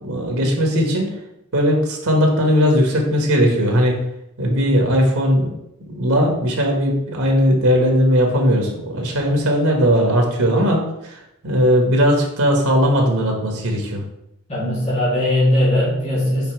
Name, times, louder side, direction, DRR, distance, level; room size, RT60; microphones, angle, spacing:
voice 1, 0.0-1.1 1.5-4.0 4.4-5.5 5.9-14.0, equal, 90° right, 1 dB, 1.5 m, -18 dB
voice 2, 14.5-16.5, left 1 dB, 30° left, -8 dB, 2.2 m, -19 dB
5.7 x 4.9 x 4.6 m, 0.84 s
head